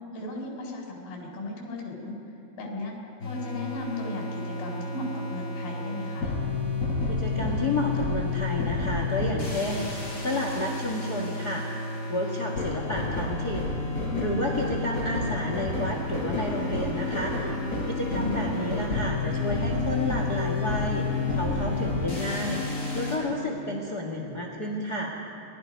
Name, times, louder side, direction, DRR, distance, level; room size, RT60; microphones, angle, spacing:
voice 1, 0.1-2.2 2.6-3.0 3.2-6.3 14.0-14.5 17.7-18.5, left 2 dB, 70° left, 0 dB, 5.8 m, -36 dB
sound 1, 3.2-23.2, left 3 dB, 20° left, 5.2 m, -30 dB
voice 2, 7.1-11.7 12.1-13.8 14.2-17.3 17.9-25.1, left 1 dB, 40° left, 1 dB, 1.4 m, -31 dB
27.5 x 21.0 x 5.3 m, 3.0 s
omnidirectional pair, 4.6 m